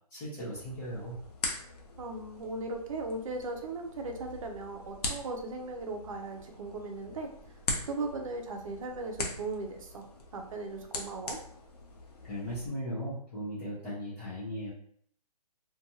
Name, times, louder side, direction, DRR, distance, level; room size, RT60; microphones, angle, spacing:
voice 1, 0.1-1.2 12.3-14.7, equal, 10° left, -9 dB, 0.3 m, -37 dB
sound 1, 0.5-12.7, left 2 dB, 75° left, 0.7 m, -41 dB
voice 2, 2.0-7.3 7.8-10.1 10.3-11.4, right 3 dB, 55° right, 3 dB, 0.6 m, -37 dB
2.6 x 2.3 x 2.6 m, 0.63 s
hypercardioid pair, 155°, 20 cm